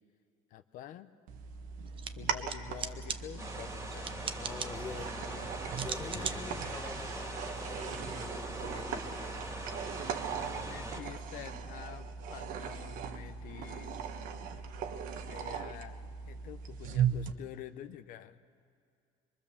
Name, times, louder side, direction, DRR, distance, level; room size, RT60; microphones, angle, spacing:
voice 1, 0.5-1.1 2.2-5.6 6.0-6.8 10.3-14.1 14.4-14.6 15.2-16.0 16.3-18.4, left 12 dB, 65° left, 0.9 m, -48 dB
sound 1, 1.3-17.3, right 7 dB, 65° right, 1.4 m, -38 dB
sound 2, 1.9-8.0, right 7 dB, 35° right, 0.9 m, -43 dB
sound 3, 3.4-11.0, right 2 dB, 20° right, 2.3 m, -42 dB
voice 2, 4.4-10.0, left 5 dB, 20° left, 0.9 m, -47 dB
24.0 x 23.5 x 7.3 m
cardioid pair, 135°, 15 cm